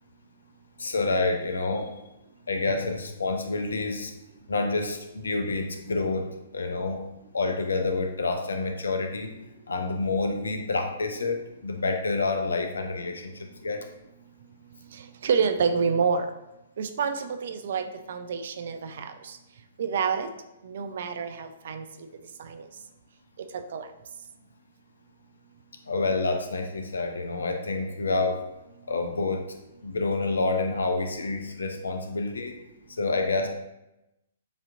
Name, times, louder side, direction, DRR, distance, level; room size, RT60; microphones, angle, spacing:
voice 1, 0.8-1.9 2.5-4.1 4.5-7.0 7.3-9.3 9.7-11.4 11.6-13.8 25.9-28.4 28.9-29.5 29.8-32.5 33.0-33.5, left 3 dB, 75° left, 5 dB, 0.6 m, -28 dB
voice 2, 15.2-16.3 16.8-19.1 19.8-20.3 20.6-21.8 22.4-22.6 23.7-23.9, right 6 dB, 60° right, 8 dB, 0.5 m, -27 dB
7.0 x 2.9 x 2.6 m, 0.92 s
figure-of-eight pair, 120°, 0 cm